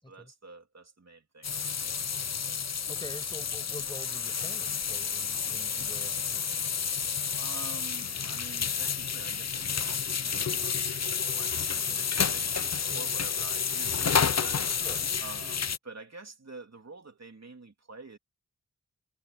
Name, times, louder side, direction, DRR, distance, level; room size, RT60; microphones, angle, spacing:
voice 1, 0.1-2.0 7.4-14.7 15.2-18.2, right 3 dB, 50° right, 3.6 m, -48 dB
sound 1, 1.4-15.8, left 7 dB, 55° left, 0.7 m, -30 dB
voice 2, 2.9-6.6 12.9-13.1 14.8-15.1, left 1 dB, 15° left, 7.0 m, -46 dB
sound 2, 6.2-8.3 8.7-14.3, right 5 dB, 85° right, 7.6 m, -60 dB
cardioid pair, 50°, 33 cm